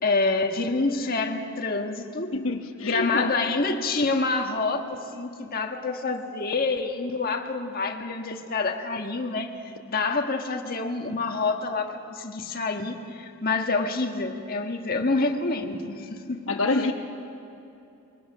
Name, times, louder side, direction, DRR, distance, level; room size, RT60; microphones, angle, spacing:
voice 1, 0.0-2.3 2.8-16.6, left 3 dB, 45° left, 4 dB, 1.6 m, -27 dB
voice 2, 2.3-3.3 16.5-16.9, left 3 dB, 80° left, 4 dB, 1.1 m, -26 dB
25.0 x 22.5 x 6.1 m, 2.7 s
head